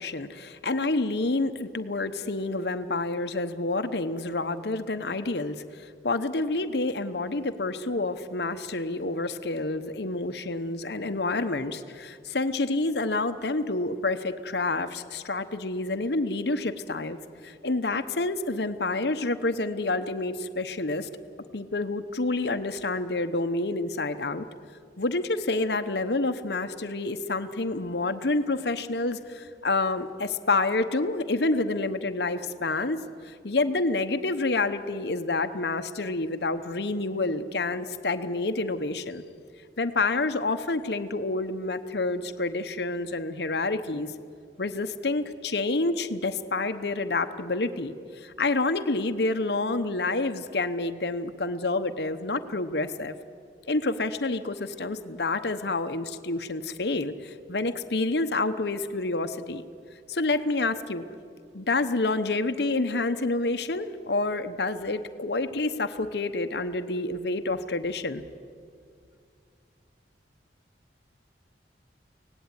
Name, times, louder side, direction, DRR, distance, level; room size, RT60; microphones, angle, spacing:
voice 1, 0.0-17.2 17.4-21.1 21.5-24.5 25.0-33.0 33.2-39.2 39.8-44.1 44.6-53.1 53.7-59.6 60.1-61.0 61.5-68.2, left 2 dB, 60° left, 8 dB, 1.0 m, -28 dB
24.5 x 18.0 x 9.7 m, 2.3 s
head